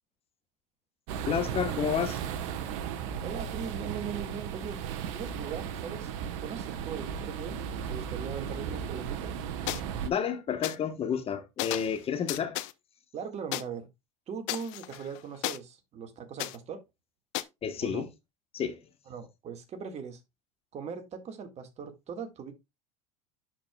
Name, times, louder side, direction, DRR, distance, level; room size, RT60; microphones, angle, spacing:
sound 1, 1.1-10.1, right 8 dB, 65° right, 1.1 m, -35 dB
voice 1, 1.2-2.2 10.0-12.6 17.6-18.1 18.5-18.8, left 8 dB, 35° left, 1.1 m, -30 dB
voice 2, 3.2-4.8 5.1-6.1 6.4-7.6 7.9-9.3 13.1-13.9 14.3-16.8 17.8-18.0 19.1-20.2 20.7-22.5, right 6 dB, 40° right, 1.8 m, -40 dB
sound 2, 9.7-9.8 10.6-10.8 11.6-12.0 12.3-12.7 13.5-13.6 14.5-15.6 16.4-16.6 17.3-17.4, left 18 dB, 70° left, 0.6 m, -33 dB
11.0 x 4.7 x 2.3 m
hypercardioid pair, 90°, 17 cm